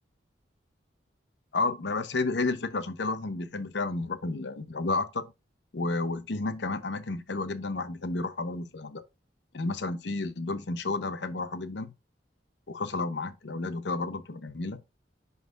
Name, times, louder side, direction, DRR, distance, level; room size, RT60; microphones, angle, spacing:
voice 1, 1.5-5.3 5.7-9.0 9.5-11.9 12.7-14.8, left 3 dB, 75° left, 0.7 m, -31 dB
10.5 x 4.0 x 2.4 m
head